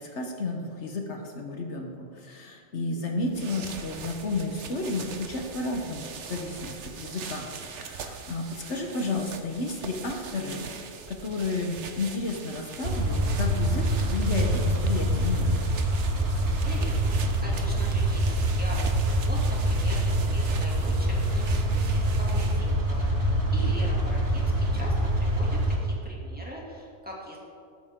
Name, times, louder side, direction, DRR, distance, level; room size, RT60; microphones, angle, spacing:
voice 1, 0.0-7.5 7.7-10.7 11.1-15.6, left 3 dB, 70° left, 2 dB, 1.4 m, -32 dB
sound 1, 3.2-22.8, right 5 dB, 75° right, 1.2 m, -42 dB
sound 2, 12.8-25.8, right 1 dB, 55° right, 1.8 m, -25 dB
voice 2, 16.6-27.4, equal, 10° right, -4 dB, 2.4 m, -41 dB
13.0 x 12.0 x 3.7 m, 2.3 s
omnidirectional pair, 1.2 m